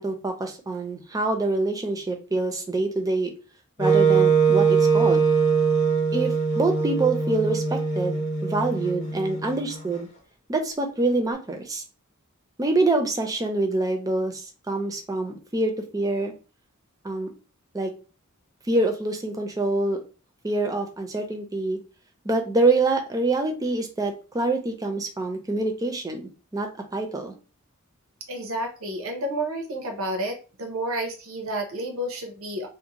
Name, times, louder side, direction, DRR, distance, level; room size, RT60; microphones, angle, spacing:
voice 1, 0.0-3.3 3.8-5.3 6.1-10.1 10.5-11.8 12.6-16.3 17.0-17.3 17.7-17.9 18.7-20.0 20.4-21.8 22.2-27.3, right 2 dB, 15° right, 4 dB, 0.4 m, -26 dB
Wind instrument woodwind instrument, 3.8-9.8, right 5 dB, 35° left, 0.7 m, -22 dB
voice 2, 28.3-32.7, right 1 dB, 75° right, 3 dB, 0.7 m, -30 dB
2.5 x 2.1 x 2.8 m, 0.34 s
head